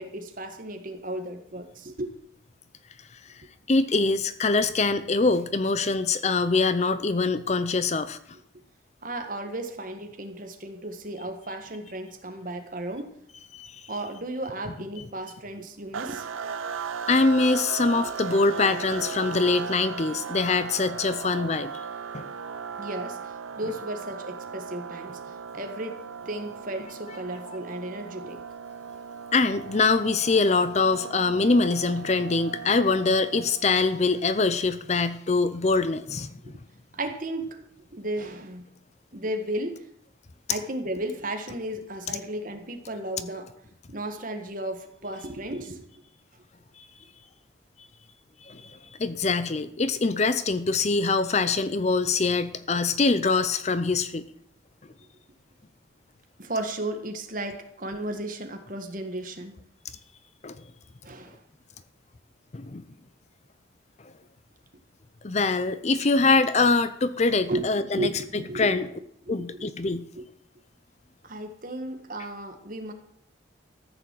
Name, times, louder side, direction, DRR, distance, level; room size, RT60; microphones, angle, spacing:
voice 1, 0.0-2.1 9.0-13.1 13.9-16.3 18.0-18.1 18.9-19.1 22.8-25.2 25.5-28.4 34.0-34.1 36.4-36.5 36.9-37.6 37.9-38.7 39.1-39.9 40.5-43.5 43.9-45.9 56.4-59.5 61.0-61.4 67.5-68.7 69.2-69.7 70.1-70.2 71.2-72.9, right 1 dB, 40° right, 5 dB, 1.6 m, -34 dB
voice 2, 3.7-8.2 13.5-13.8 17.1-21.7 22.1-22.3 29.3-36.3 46.8-46.9 48.5-54.3 60.4-60.6 62.5-62.8 65.2-68.9 69.3-70.1, left 3 dB, 35° left, 13 dB, 0.5 m, -24 dB
sound 1, 15.9-33.8, right 6 dB, 85° right, 0.7 m, -37 dB
14.0 x 7.0 x 7.6 m, 0.71 s
head